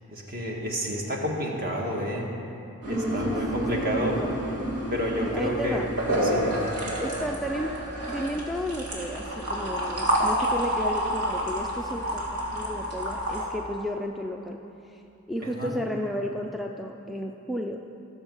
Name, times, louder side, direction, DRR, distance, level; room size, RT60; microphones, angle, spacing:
voice 1, 0.1-2.3 2.9-4.2 4.9-5.9 6.2-6.7 15.4-15.7, equal, 40° right, -1 dB, 1.8 m, -30 dB
sound 1, 2.8-13.4, equal, 80° right, 2.8 m, -29 dB
voice 2, 2.9-4.4 5.2-5.9 6.9-7.7 8.1-14.6 14.8-15.0 15.3-17.8, equal, ahead, 2 dB, 0.4 m, -33 dB
19.0 x 7.1 x 5.5 m, 2.9 s
head